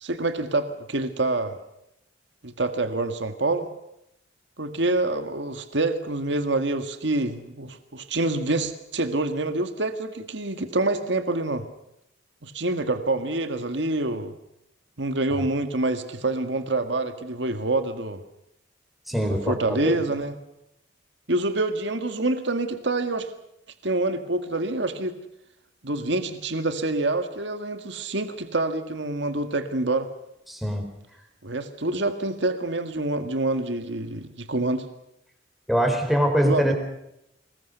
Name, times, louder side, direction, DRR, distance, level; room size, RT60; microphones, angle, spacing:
voice 1, 0.0-1.6 2.4-3.7 4.6-11.7 12.4-14.3 15.0-18.2 19.2-20.3 21.3-23.3 23.8-25.2 25.8-30.1 31.4-34.9 36.4-36.7, right 2 dB, 65° right, 8 dB, 1.8 m, -26 dB
voice 2, 19.1-20.0 30.5-30.9 35.7-36.7, equal, ahead, 4 dB, 4.5 m, -23 dB
24.5 x 21.0 x 6.8 m, 0.82 s
head